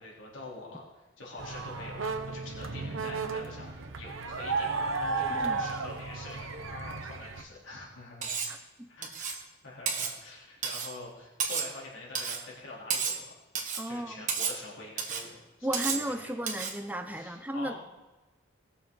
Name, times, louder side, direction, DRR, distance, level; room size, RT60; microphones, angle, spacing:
voice 1, 0.0-8.4 8.9-9.4 9.6-13.3 13.9-16.3 17.1-17.8, left 2 dB, 75° left, -5 dB, 3.4 m, -46 dB
sound 1, 1.4-7.4, right 4 dB, 90° right, 1.0 m, -34 dB
voice 2, 5.3-5.6 8.5-8.9 13.8-14.3 15.6-17.7, right 1 dB, 10° right, 7 dB, 0.7 m, -35 dB
Cutlery silverware, 8.2-8.6 9.0-9.4 9.9-10.2 10.6-10.9 11.4-11.8 12.2-12.4 12.9-13.3 13.6-13.9 14.3-14.6 15.0-15.3 15.7-16.1 16.5-16.8, right 6 dB, 40° right, 1.3 m, -32 dB
19.5 x 6.9 x 3.9 m, 1.1 s
head